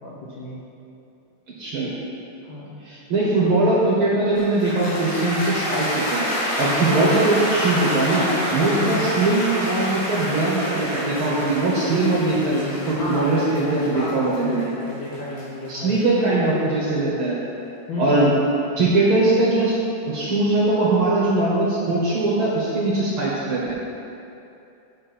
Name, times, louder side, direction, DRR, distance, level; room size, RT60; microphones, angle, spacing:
voice 1, 0.0-0.6 2.4-2.8 8.8-9.1 12.9-16.0 17.9-18.3, left 1 dB, 85° left, -6 dB, 1.0 m, -31 dB
voice 2, 1.6-1.9 2.8-6.2 6.6-14.6 15.7-17.4 18.0-18.3 18.8-19.8 20.1-23.7, right 2 dB, 60° right, -6 dB, 1.4 m, -21 dB
Cheering / Applause, 4.4-16.6, equal, 65° left, 3.4 m, -28 dB
7.6 x 7.5 x 4.3 m, 2.7 s
omnidirectional pair, 3.7 m